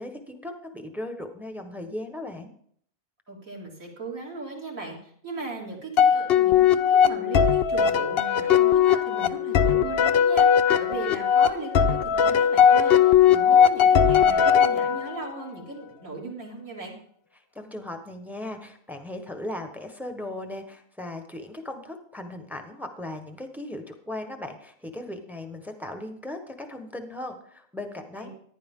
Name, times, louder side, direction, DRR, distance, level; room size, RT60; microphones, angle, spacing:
voice 1, 0.0-2.5 17.3-28.3, left 1 dB, ahead, 6 dB, 1.1 m, -37 dB
voice 2, 3.3-16.9 28.2-28.3, right 3 dB, 65° right, -3 dB, 3.4 m, -37 dB
sound 1, 6.0-15.3, left 8 dB, 60° left, 0.7 m, -19 dB
15.0 x 10.5 x 3.8 m, 0.64 s
omnidirectional pair, 1.5 m